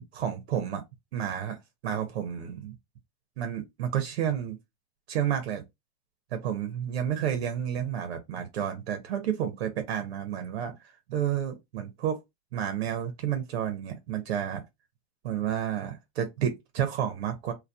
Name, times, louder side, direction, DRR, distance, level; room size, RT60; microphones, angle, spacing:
voice 1, 0.1-0.8 1.1-1.6 1.8-2.7 3.4-4.6 5.1-5.6 6.3-10.7 11.1-12.2 12.5-14.6 15.2-17.5, right 9 dB, 80° right, 0.8 m, -30 dB
2.6 x 2.2 x 2.2 m
hypercardioid pair, 110°, 32 cm